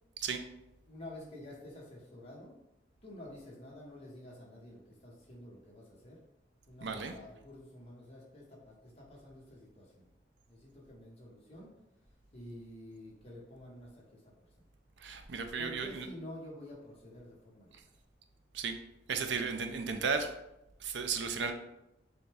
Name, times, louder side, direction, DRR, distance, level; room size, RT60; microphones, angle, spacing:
voice 1, 0.9-2.5 3.0-6.2 6.7-10.0 10.5-11.7 12.3-14.7 15.6-17.9, left 1 dB, 35° left, -4 dB, 1.1 m, -50 dB
voice 2, 6.8-7.1 15.0-16.1 18.5-18.8 19.1-20.3 20.8-21.5, right 5 dB, 75° right, 7 dB, 0.5 m, -34 dB
6.3 x 2.3 x 3.4 m, 0.87 s
head